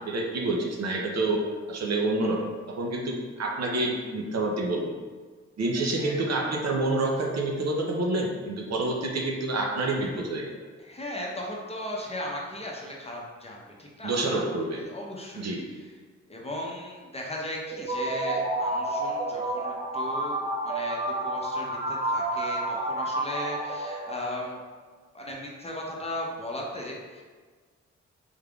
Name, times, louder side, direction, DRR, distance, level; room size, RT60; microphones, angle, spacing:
voice 1, 0.0-1.4 1.7-2.4 2.8-4.9 5.6-10.5 14.0-14.8 15.3-15.6, right 2 dB, 60° right, 0 dB, 0.7 m, -28 dB
voice 2, 5.8-6.4 10.8-14.4 14.7-16.0 16.3-24.6 25.1-27.2, left 1 dB, 20° left, -2 dB, 0.7 m, -37 dB
sound 1, 17.7-24.5, right 1 dB, 20° right, 0.5 m, -30 dB
3.6 x 3.3 x 2.3 m, 1.5 s
cardioid pair, 55°, 29 cm